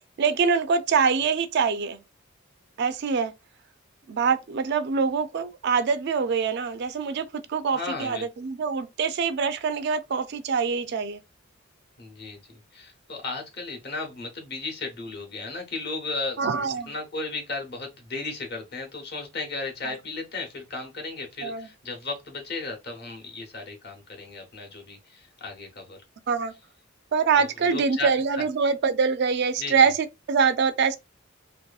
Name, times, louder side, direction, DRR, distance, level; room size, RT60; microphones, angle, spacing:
voice 1, 0.2-2.0 2.8-3.3 4.1-11.2 16.4-16.9 19.9-20.0 21.4-21.7 26.3-26.5 27.1-31.0, right 5 dB, 55° right, 0.4 m, -24 dB
voice 2, 7.7-8.3 12.0-16.4 16.9-26.0 27.4-28.1 29.6-29.7, left 3 dB, 55° left, 1.0 m, -35 dB
2.8 x 2.5 x 2.3 m
head